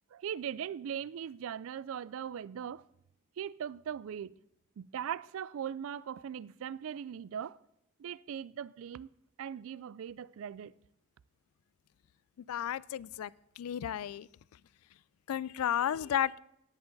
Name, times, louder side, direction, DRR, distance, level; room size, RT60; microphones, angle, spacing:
voice 1, 0.1-2.8 3.4-4.3 4.8-7.6 8.0-9.1 9.4-10.7, right 8 dB, 70° right, 0.3 m, -39 dB
voice 2, 12.5-13.3 13.6-14.3 15.3-16.3, left 10 dB, 90° left, 0.3 m, -32 dB
17.5 x 8.0 x 4.0 m
head